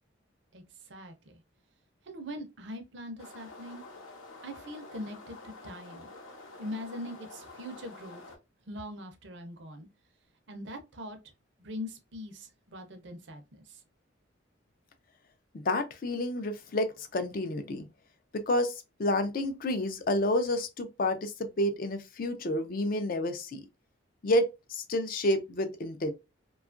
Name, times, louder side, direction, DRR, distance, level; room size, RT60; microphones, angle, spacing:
voice 1, 0.5-1.4 2.1-3.8 4.4-6.1 6.6-8.2 8.7-9.9 10.5-11.2 11.6-13.8, left 1 dB, 60° right, 0.6 m, -42 dB
sound 1, 3.2-8.4, left 3 dB, 85° left, 0.8 m, -48 dB
voice 2, 15.5-17.9 18.3-23.6 24.2-26.1, left 1 dB, 45° left, 0.4 m, -29 dB
2.8 x 2.3 x 2.4 m
head